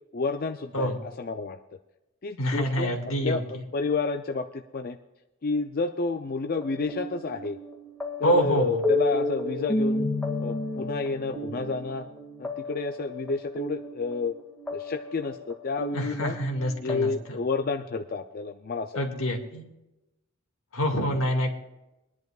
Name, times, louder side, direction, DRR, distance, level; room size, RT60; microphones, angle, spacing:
voice 1, 0.1-1.6 2.2-5.0 5.4-7.6 8.2-10.1 10.4-12.1 12.4-14.3 14.7-16.4 16.8-19.1, left 4 dB, 45° left, 6 dB, 0.5 m, -30 dB
voice 2, 2.4-3.4 8.2-8.8 15.9-17.1 19.0-19.6 20.7-21.5, equal, 80° left, 2 dB, 2.1 m, -26 dB
sound 1, 6.6-17.0, left 2 dB, 5° left, 2.0 m, -32 dB
24.0 x 10.5 x 2.4 m, 0.97 s
head